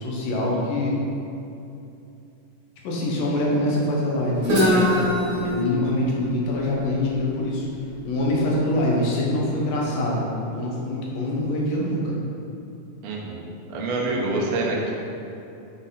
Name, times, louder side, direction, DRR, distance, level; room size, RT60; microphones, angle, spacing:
voice 1, 0.0-1.0 2.8-4.9 5.2-7.7 8.0-10.2 10.5-12.2, left 1 dB, 75° left, -4 dB, 2.9 m, -24 dB
Guitar, 4.4-8.2, equal, 50° right, 1.1 m, -24 dB
voice 2, 13.0-13.4 13.7-14.9, right 2 dB, 65° right, -2 dB, 1.8 m, -26 dB
7.2 x 6.2 x 4.1 m, 2.8 s
omnidirectional pair, 4.1 m